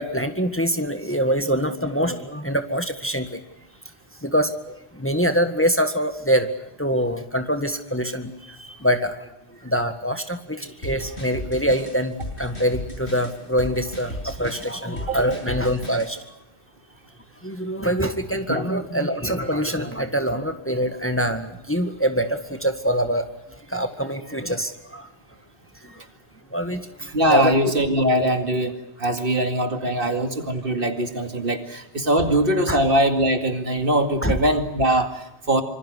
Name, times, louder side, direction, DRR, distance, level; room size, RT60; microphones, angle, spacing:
voice 1, 0.0-3.4 4.2-9.1 9.6-16.2 17.4-23.3 23.7-25.1 25.8-26.0 26.5-27.5 32.7-32.8 34.2-34.4, equal, 10° left, 7 dB, 1.7 m, -24 dB
sound 1, 10.8-16.1, equal, 90° left, 8.4 m, -34 dB
voice 2, 27.1-35.6, right 1 dB, 60° right, 6 dB, 2.5 m, -22 dB
26.0 x 24.5 x 6.4 m, 0.90 s
omnidirectional pair, 1.1 m